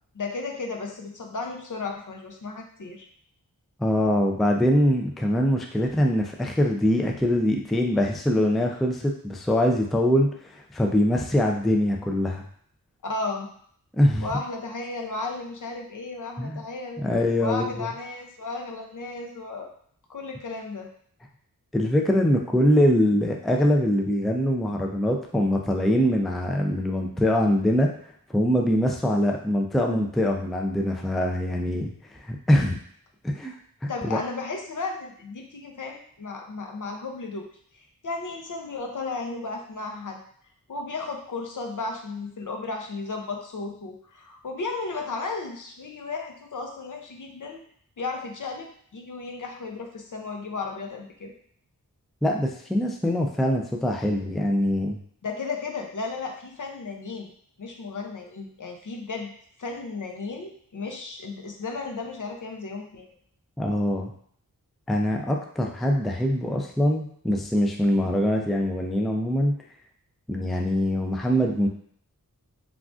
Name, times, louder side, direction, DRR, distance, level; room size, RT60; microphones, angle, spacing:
voice 1, 0.1-3.0 13.0-13.5 14.2-17.0 17.4-19.7 20.1-20.9 33.9-37.5 37.7-40.2 40.7-47.6 48.0-51.3 55.2-57.3 57.6-59.3 59.6-63.1, left 3 dB, 60° left, 2 dB, 0.6 m, -34 dB
voice 2, 3.8-12.4 13.9-14.3 16.4-16.6 17.0-17.9 21.7-27.9 28.3-32.8 33.2-33.5 33.8-34.2 52.2-55.0 63.6-64.1 64.9-69.5 70.3-71.7, equal, ahead, 2 dB, 0.3 m, -23 dB
3.6 x 2.4 x 2.4 m, 0.62 s
wide cardioid pair, 45°, 35 cm